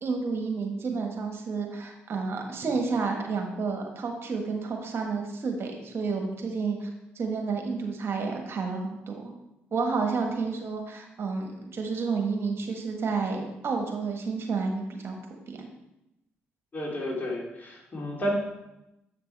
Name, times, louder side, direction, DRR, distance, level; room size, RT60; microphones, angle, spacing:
voice 1, 0.0-6.9 7.1-9.3 9.7-15.2 15.5-15.7, right 4 dB, 50° right, 2 dB, 1.5 m, -30 dB
voice 2, 16.7-18.3, equal, 35° left, -4 dB, 3.0 m, -32 dB
7.9 x 6.0 x 3.4 m, 0.90 s
hypercardioid pair, 50°, 5 cm